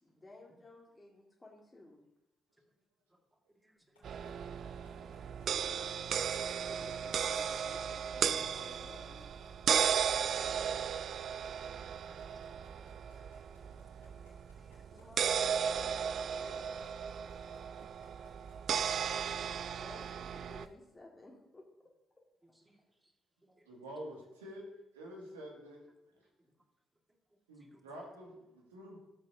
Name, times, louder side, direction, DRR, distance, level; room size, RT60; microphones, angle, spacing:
voice 1, 0.0-2.0 6.6-9.3 14.8-16.7 19.7-21.9, left 2 dB, 20° left, -2 dB, 1.9 m, -55 dB
voice 2, 3.6-4.0 5.2-5.3 8.3-8.4 12.1-12.6 13.2-13.3 13.6-13.8 14.6-15.1 17.6-18.6 22.7-22.8 23.6-23.7 27.6-27.7, right 1 dB, 15° right, 3 dB, 1.9 m, -67 dB
sound 1, 3.9-4.3 4.6-5.5 5.7-5.8 6.1-6.9 7.1-7.2 7.5-8.6 8.9-9.0 9.2-10.1 10.4-18.8 19.2-20.3 20.6-20.7, left 3 dB, 80° left, 3.1 m, -64 dB
sound 2, 4.0-20.7, right 7 dB, 50° right, 0.3 m, -35 dB
voice 3, 23.7-24.7 24.9-25.8 27.5-29.0, equal, 80° right, -2 dB, 2.2 m, -47 dB
13.5 x 7.8 x 2.7 m, 0.90 s
figure-of-eight pair, 40°, 0 cm